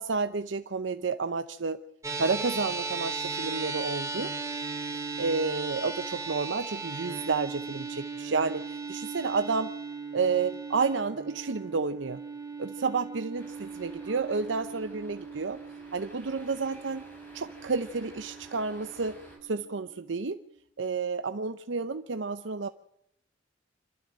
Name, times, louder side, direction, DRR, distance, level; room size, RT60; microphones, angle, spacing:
voice 1, 0.0-1.8 2.2-4.3 5.2-9.7 10.1-12.2 12.6-15.6 15.9-17.0 17.3-20.4 20.8-22.7, right 4 dB, 85° right, 10 dB, 0.7 m, -30 dB
sound 1, 2.0-20.6, right 4 dB, 15° right, 2.3 m, -38 dB
sound 2, 13.4-19.4, equal, 10° left, 6.6 m, -53 dB
27.0 x 12.5 x 7.7 m, 0.80 s
head